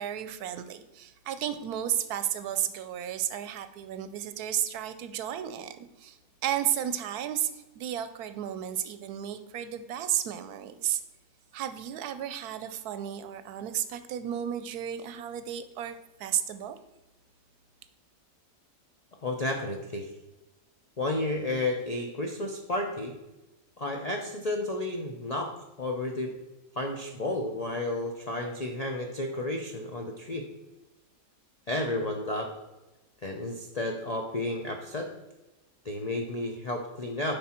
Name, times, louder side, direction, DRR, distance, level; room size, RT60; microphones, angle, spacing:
voice 1, 0.0-11.0 11.5-16.8, right 10 dB, 70° right, 11 dB, 1.0 m, -33 dB
voice 2, 19.2-20.1 21.0-23.2 23.8-26.3 26.8-30.5 31.7-32.5 33.2-35.1 35.8-37.4, left 2 dB, 85° left, 2 dB, 0.3 m, -32 dB
7.7 x 5.3 x 4.3 m, 1.1 s
omnidirectional pair, 1.8 m